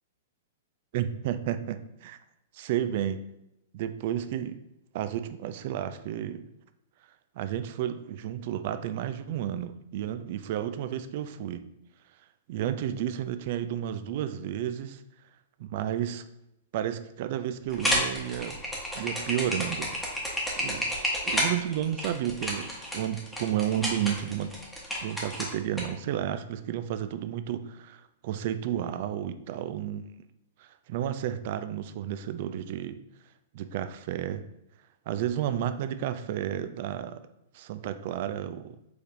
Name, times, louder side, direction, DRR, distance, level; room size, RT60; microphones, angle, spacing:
voice 1, 0.9-2.2 2.5-3.3 3.7-4.6 4.9-6.4 7.4-11.7 12.5-15.0 15.6-16.2 16.7-18.6 19.0-19.9 20.3-20.9 21.2-24.5 25.0-30.0 30.6-33.0 33.5-34.4 35.1-37.2 37.5-38.8, right 10 dB, 55° right, 11 dB, 0.3 m, -32 dB
sound 1, 17.7-25.8, equal, ahead, 1.1 m, -30 dB
4.7 x 3.3 x 2.6 m, 0.86 s
hypercardioid pair, 125°, 0 cm